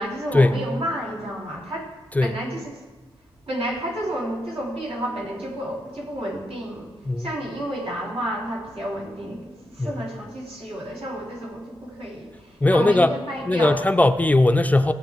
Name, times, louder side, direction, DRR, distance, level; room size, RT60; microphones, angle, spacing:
voice 1, 0.0-1.9 2.2-2.7 3.5-6.9 7.2-13.8, equal, 80° right, -4 dB, 3.3 m, -31 dB
voice 2, 12.6-13.1 13.5-14.9, left 2 dB, 15° left, 9 dB, 0.4 m, -19 dB
18.5 x 8.1 x 3.5 m, 1.3 s
wide cardioid pair, 115°, 10 cm